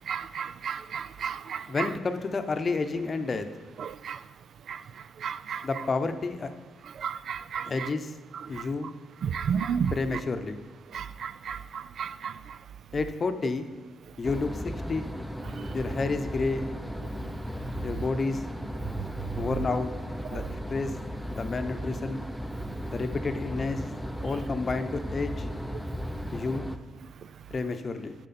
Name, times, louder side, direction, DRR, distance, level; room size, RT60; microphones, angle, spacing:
voice 1, 0.1-1.6 4.0-4.2 4.7-4.8 5.2-5.6 7.0-7.7 9.3-9.9 10.9-12.3, right 7 dB, 65° right, 15 dB, 0.3 m, -32 dB
voice 2, 1.7-3.5 5.6-6.5 7.7-8.1 8.5-8.9 9.9-10.6 12.9-13.7 14.2-15.1 15.7-16.7 17.8-18.4 19.4-19.9 20.3-20.9 21.3-22.2 22.9-23.9 24.2-25.5 26.3-26.7 27.5-28.1, left 3 dB, 40° left, 8 dB, 0.8 m, -30 dB
sound 1, 14.2-26.8, equal, ahead, 0.6 m, -36 dB
10.5 x 6.4 x 4.3 m, 1.2 s
cardioid pair, 90°, 0 cm